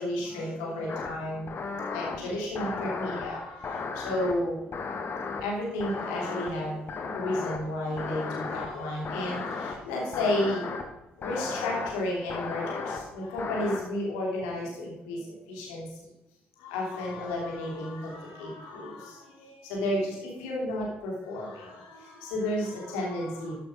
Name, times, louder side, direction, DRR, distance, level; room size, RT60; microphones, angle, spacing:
voice 1, 0.0-4.6 5.4-10.7 11.2-15.9 16.6-23.5, left 1 dB, 75° left, -3 dB, 2.9 m, -32 dB
sound 1, 0.9-1.1 1.5-2.2 2.6-3.3 3.6-4.3 4.7-5.4 5.8-6.5 6.9-7.6 8.0-8.7 9.0-9.8 10.1-10.8 11.2-11.9 12.3-13.0 13.4-13.8, left 4 dB, 45° left, 1.7 m, -34 dB
13.0 x 6.0 x 5.0 m, 0.94 s
figure-of-eight pair, 45°, 5 cm